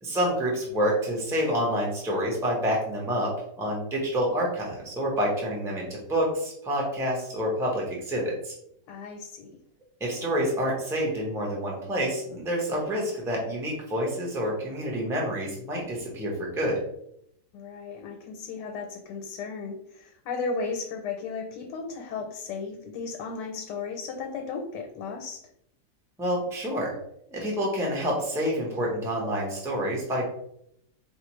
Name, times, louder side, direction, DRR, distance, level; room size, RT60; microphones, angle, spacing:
voice 1, 0.0-8.5 10.0-16.8 26.2-26.9 27.3-30.3, equal, 5° right, -2 dB, 0.5 m, -28 dB
voice 2, 8.9-9.5 17.5-25.4, left 4 dB, 90° left, 3 dB, 1.2 m, -35 dB
4.1 x 2.6 x 3.0 m, 0.74 s
omnidirectional pair, 1.8 m